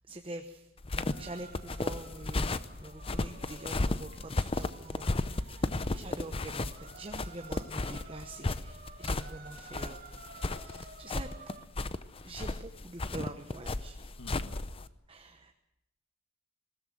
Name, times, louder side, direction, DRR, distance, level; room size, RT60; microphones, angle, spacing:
voice 1, 0.1-0.7 0.9-10.1 10.5-11.3 12.2-14.0 15.1-15.5, right 2 dB, 25° right, 5 dB, 0.9 m, -45 dB
sound 1, 0.8-14.9, left 2 dB, 30° left, 0.6 m, -34 dB
sound 2, 1.1-11.7, right 4 dB, 45° right, 1.9 m, -53 dB
voice 2, 5.6-6.1 14.2-14.6, left 1 dB, 75° left, 7 dB, 2.0 m, -48 dB
20.5 x 17.0 x 7.6 m, 0.91 s
head